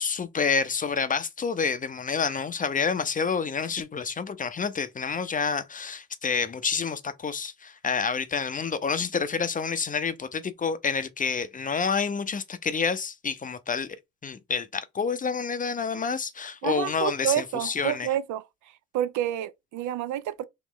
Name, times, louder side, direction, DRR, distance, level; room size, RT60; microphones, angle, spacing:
voice 1, 0.0-13.9 14.2-18.1, left 5 dB, 25° left, 0.5 m, -28 dB
voice 2, 16.6-18.4 18.9-20.5, right 11 dB, 75° right, 0.5 m, -29 dB
3.1 x 3.0 x 3.6 m
cardioid pair, 90°, 30 cm